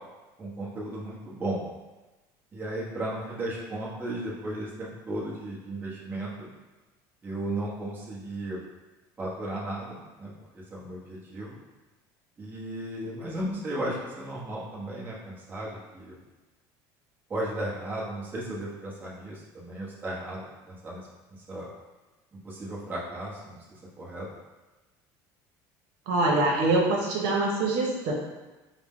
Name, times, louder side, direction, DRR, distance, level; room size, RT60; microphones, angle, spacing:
voice 1, 0.4-1.6 2.5-6.5 7.2-8.6 9.2-11.6 12.4-16.1 17.3-21.0 21.4-21.7 22.4-23.6 24.0-24.3, right 1 dB, 20° right, -6 dB, 0.9 m, -35 dB
voice 2, 26.1-28.1, right 2 dB, 80° right, -2 dB, 0.9 m, -24 dB
4.8 x 2.1 x 3.6 m, 1.2 s
cardioid pair, 140°, 9 cm